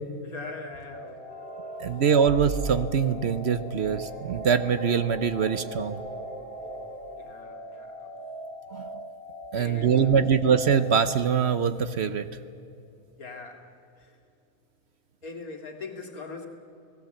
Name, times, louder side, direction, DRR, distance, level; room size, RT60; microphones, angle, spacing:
voice 1, 0.2-1.5 7.2-8.1 9.5-10.3 13.2-14.2 15.2-16.5, left 3 dB, 85° left, 3 dB, 2.6 m, -41 dB
sound 1, 0.9-11.6, equal, 35° left, 2.0 m, -41 dB
sound 2, 1.3-7.2, right 2 dB, 5° right, 2.5 m, -40 dB
voice 2, 1.8-6.0 8.7-8.9 9.5-12.3, right 7 dB, 55° right, 12 dB, 0.9 m, -23 dB
29.0 x 17.5 x 7.7 m, 2.8 s
omnidirectional pair, 1.5 m